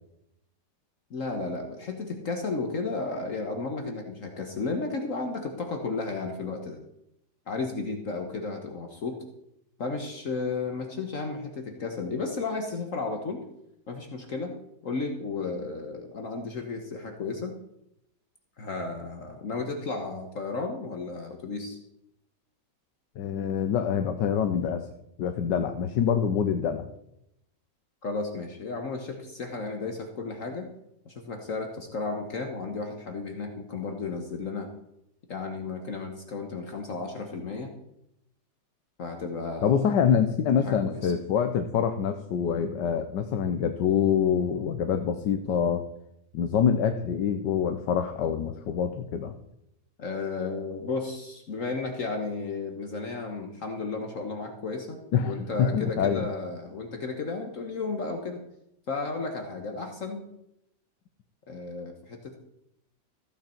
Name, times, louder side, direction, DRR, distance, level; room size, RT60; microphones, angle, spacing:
voice 1, 1.1-6.8 7.5-9.2 9.8-13.4 13.9-14.5 14.8-17.6 18.6-21.8 28.0-30.7 31.0-34.7 35.3-37.7 39.0-39.9 40.5-41.1 50.0-58.4 58.9-60.3 61.5-62.4, left 3 dB, 50° left, 4 dB, 1.4 m, -33 dB
voice 2, 23.2-24.9 25.2-26.9 39.6-45.8 46.3-49.3 55.1-56.3, left 7 dB, 80° left, 7 dB, 1.4 m, -25 dB
14.5 x 9.0 x 4.4 m, 0.82 s
omnidirectional pair, 1.9 m